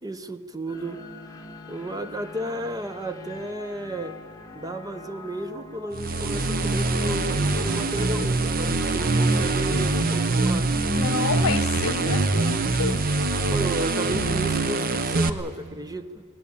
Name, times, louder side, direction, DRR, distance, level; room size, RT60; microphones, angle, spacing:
voice 1, 0.0-1.0 1.7-4.2 4.5-10.7 13.5-16.2, right 1 dB, 15° right, 0.7 m, -33 dB
sound 1, 0.7-8.2, left 2 dB, 15° left, 1.5 m, -43 dB
sound 2, 5.9-15.3, right 3 dB, 45° right, 0.9 m, -24 dB
voice 2, 11.0-13.0, left 6 dB, 70° left, 0.6 m, -29 dB
19.5 x 18.5 x 8.7 m
head